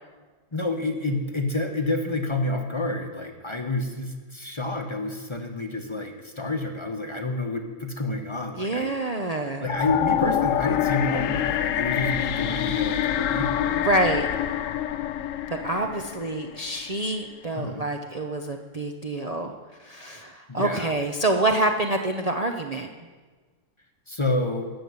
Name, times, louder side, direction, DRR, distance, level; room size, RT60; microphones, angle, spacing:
voice 1, 0.5-8.9 9.6-13.8 17.5-17.9 20.5-20.9 24.1-24.7, left 2 dB, 25° left, 4 dB, 1.1 m, -29 dB
voice 2, 8.6-9.6 13.8-14.3 15.5-19.5 19.8-22.9, right 2 dB, 35° right, 3 dB, 0.7 m, -26 dB
sound 1, 9.7-16.8, left 11 dB, 80° left, 1.0 m, -26 dB
14.0 x 7.0 x 9.5 m, 1.4 s
omnidirectional pair, 1.3 m